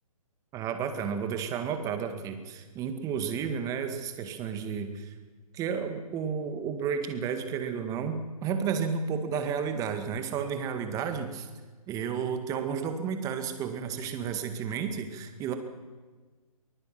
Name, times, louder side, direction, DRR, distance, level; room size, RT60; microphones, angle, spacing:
voice 1, 0.5-5.1 5.5-11.5 11.9-15.5, right 6 dB, 15° right, 7 dB, 1.9 m, -32 dB
24.5 x 20.0 x 6.0 m, 1.4 s
hypercardioid pair, 145°, 19 cm